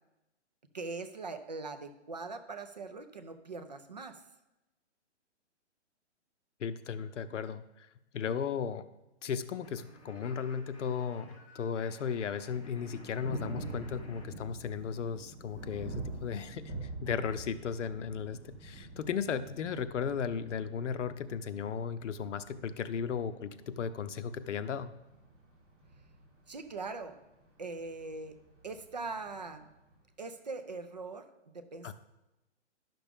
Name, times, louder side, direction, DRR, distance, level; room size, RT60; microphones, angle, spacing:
voice 1, 0.7-4.2 26.5-27.2 27.6-28.3 28.6-29.6 30.2-31.9, right 3 dB, 40° right, 8 dB, 0.4 m, -41 dB
voice 2, 6.6-7.9 8.1-8.9 9.2-24.9 31.8-31.9, left 7 dB, 80° left, 12 dB, 0.7 m, -35 dB
sound 1, 9.6-14.3 14.5-16.5, left 2 dB, 30° left, 1.0 m, -58 dB
Thunder, 12.1-30.0, right 3 dB, 20° right, 1.6 m, -47 dB
11.0 x 6.0 x 3.5 m, 0.97 s
hypercardioid pair, 175°, 36 cm